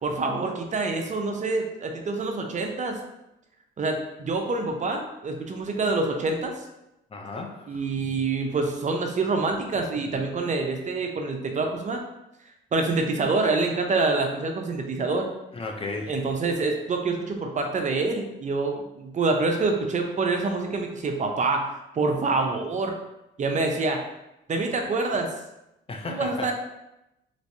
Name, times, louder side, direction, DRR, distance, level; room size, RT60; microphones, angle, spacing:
voice 1, 0.0-3.0 3.8-6.5 7.7-12.0 12.7-15.3 16.1-23.0 23.4-24.0 24.5-25.3 26.1-26.5, right 3 dB, 40° right, 3 dB, 0.5 m, -26 dB
voice 2, 7.1-7.9 15.5-16.2 25.9-26.5, left 3 dB, 30° left, 2 dB, 0.5 m, -34 dB
3.2 x 3.1 x 2.7 m, 0.90 s
cardioid pair, 90°, 20 cm